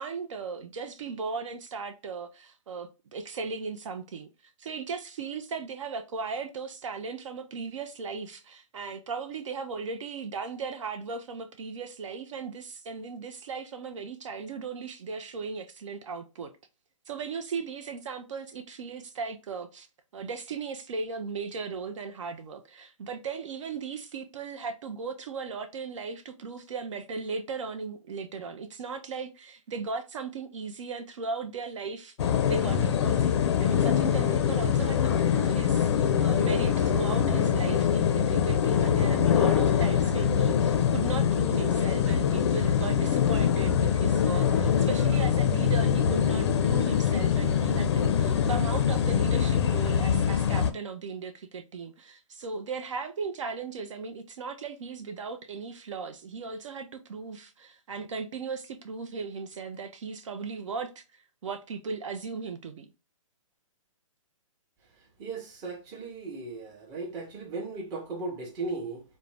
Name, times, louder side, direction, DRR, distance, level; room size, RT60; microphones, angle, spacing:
voice 1, 0.0-16.5 17.1-19.9 20.1-62.9, right 5 dB, 65° right, 0.4 m, -37 dB
sound 1, 32.2-50.7, left 8 dB, 50° left, 0.4 m, -24 dB
voice 2, 65.2-69.0, right 3 dB, 20° right, 0.6 m, -36 dB
2.5 x 2.0 x 3.2 m
hypercardioid pair, 150°, 17 cm